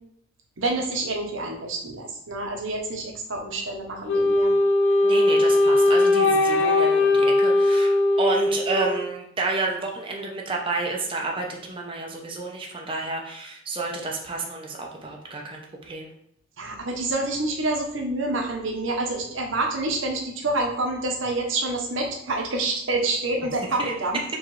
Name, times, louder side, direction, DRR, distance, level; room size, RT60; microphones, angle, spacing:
voice 1, 0.6-4.5 16.6-24.2, right 2 dB, 75° right, 2 dB, 0.9 m, -27 dB
Wind instrument woodwind instrument, 4.1-9.1, left 2 dB, 75° left, 0.7 m, -19 dB
voice 2, 5.0-7.9 8.2-16.1 23.8-23.9, right 3 dB, 25° right, -1 dB, 0.6 m, -30 dB
4.7 x 3.2 x 3.1 m, 0.70 s
head